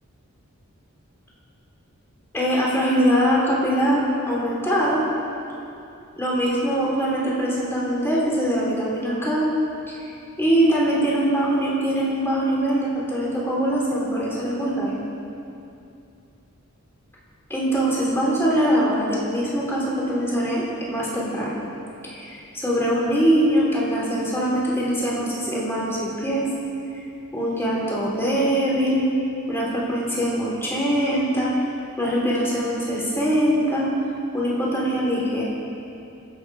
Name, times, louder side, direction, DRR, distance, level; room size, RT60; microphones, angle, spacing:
voice 1, 2.3-5.0 6.2-9.5 10.4-15.0 17.5-20.6 20.9-21.6 22.0-26.5 27.3-29.0 29.5-31.5 32.0-33.9 34.3-35.4, equal, 10° left, -6 dB, 4.0 m, -22 dB
25.0 x 8.8 x 5.0 m, 2.6 s
head